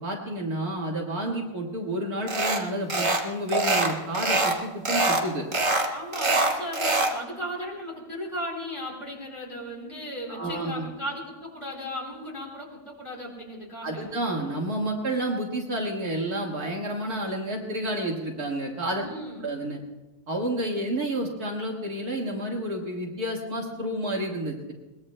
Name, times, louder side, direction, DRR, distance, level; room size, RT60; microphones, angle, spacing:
voice 1, 0.0-5.5 10.3-10.9 13.8-19.0 19.4-19.8 20.3-24.7, right 1 dB, 55° right, -1 dB, 2.1 m, -30 dB
sound 1, 2.3-2.6 2.9-3.2 3.5-4.6 4.8-5.2 5.5-7.1, right 2 dB, 30° right, 1.3 m, -24 dB
voice 2, 5.9-14.1 19.0-19.5, equal, 25° left, -3 dB, 3.9 m, -36 dB
22.0 x 20.5 x 2.2 m, 1.1 s
omnidirectional pair, 2.0 m